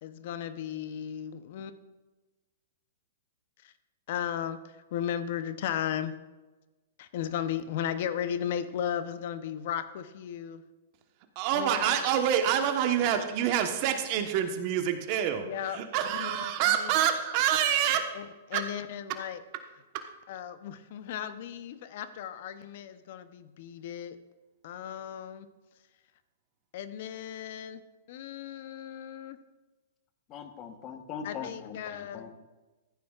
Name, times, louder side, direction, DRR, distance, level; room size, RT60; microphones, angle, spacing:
voice 1, 0.0-1.7 3.6-3.7 4.1-6.2 7.0-10.6 11.5-12.0 15.4-15.8 16.2-16.3 16.7-16.9 18.1-19.4 20.3-24.2 24.6-25.5 26.7-27.8 28.1-29.4 31.2-32.3, left 9 dB, 60° left, 12 dB, 0.7 m, -35 dB
voice 2, 11.3-18.1 18.5-18.7 19.9-20.0, right 9 dB, 45° right, 6 dB, 1.2 m, -27 dB
voice 3, 30.3-32.4, left 7 dB, 35° left, 7 dB, 1.2 m, -41 dB
14.5 x 9.4 x 2.5 m, 1.2 s
hypercardioid pair, 130°, 0 cm